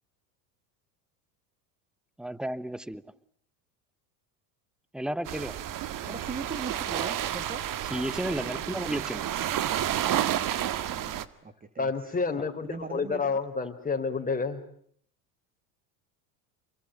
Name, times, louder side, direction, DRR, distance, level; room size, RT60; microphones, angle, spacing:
voice 1, 2.2-3.0 4.9-5.6 6.0-6.1 7.9-9.3, right 1 dB, ahead, 1.1 m, -33 dB
sound 1, 5.2-11.2, right 11 dB, 45° right, 1.9 m, -31 dB
voice 2, 6.1-7.6 8.4-8.6 10.9-12.1 12.6-13.3, right 4 dB, 20° right, 2.4 m, -40 dB
voice 3, 11.8-14.6, left 4 dB, 20° left, 4.2 m, -29 dB
28.0 x 23.0 x 9.1 m
supercardioid pair, 100°, 45 cm